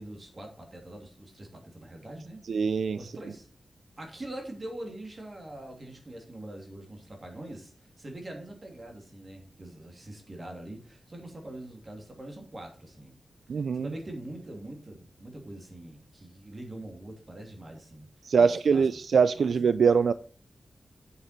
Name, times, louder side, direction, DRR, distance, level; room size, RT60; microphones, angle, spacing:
voice 1, 0.0-2.4 3.0-3.5 4.0-13.2 13.7-18.1 18.3-18.8 19.4-19.5, right 1 dB, 30° right, 2 dB, 2.9 m, -43 dB
voice 2, 2.5-3.0 13.5-13.9 18.2-20.1, right 6 dB, 80° right, 14 dB, 0.4 m, -23 dB
8.2 x 8.1 x 4.5 m, 0.39 s
wide cardioid pair, 145°, 0 cm